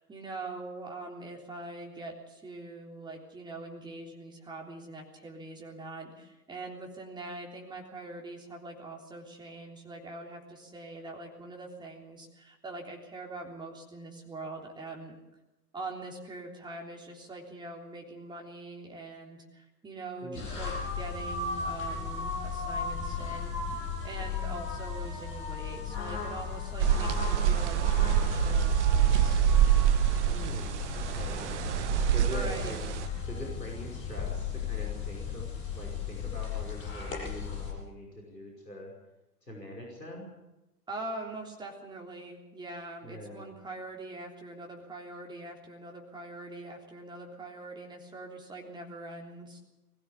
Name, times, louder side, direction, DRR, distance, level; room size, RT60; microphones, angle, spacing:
voice 1, 0.0-15.1 15.7-29.4 32.2-32.8 40.9-49.6, right 2 dB, 10° right, 1 dB, 3.5 m, -43 dB
voice 2, 20.2-20.6 30.2-31.5 32.1-32.8 33.2-38.9 39.5-40.3 43.0-43.5, equal, 85° left, -2 dB, 5.4 m, -43 dB
sound 1, 20.3-37.7, left 6 dB, 25° left, 7.6 m, -36 dB
sound 2, 26.8-33.1, right 11 dB, 45° right, 1.2 m, -26 dB
21.5 x 15.5 x 8.3 m, 1.0 s
figure-of-eight pair, 110°, 48 cm